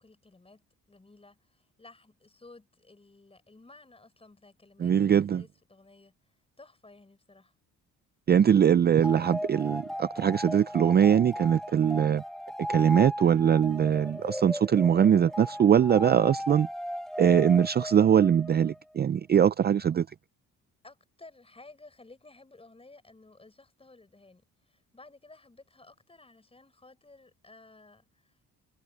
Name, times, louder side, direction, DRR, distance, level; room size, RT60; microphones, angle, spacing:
voice 1, 0.0-6.1 6.6-7.5 20.8-28.5, left 2 dB, 20° left, 6.1 m, -55 dB
voice 2, 4.8-5.4 8.3-12.2 12.7-16.7 17.2-20.1, right 8 dB, 30° right, 0.4 m, -22 dB
sound 1, 9.0-18.8, equal, ahead, 1.3 m, -36 dB
cardioid pair, 95°, 32 cm